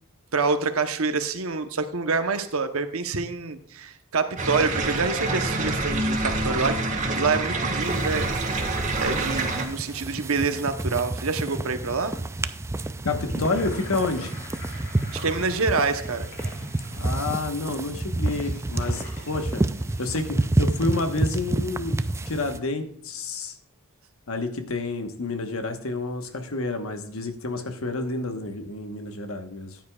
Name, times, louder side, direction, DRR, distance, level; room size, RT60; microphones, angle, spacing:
voice 1, 0.3-6.8 7.1-12.2 15.1-16.3, right 4 dB, 70° right, 8 dB, 0.9 m, -27 dB
sound 1, 4.4-9.7, right 2 dB, 35° right, 1.6 m, -26 dB
sound 2, 7.8-22.6, right 2 dB, 10° right, 0.3 m, -29 dB
voice 2, 13.0-14.3 17.0-19.6 20.0-22.0 22.3-23.6 24.3-29.8, left 3 dB, 70° left, 6 dB, 1.2 m, -29 dB
Gurgling / Sink (filling or washing), 13.1-20.4, left 1 dB, 55° left, 4.8 m, -43 dB
14.5 x 9.4 x 2.3 m, 0.64 s
head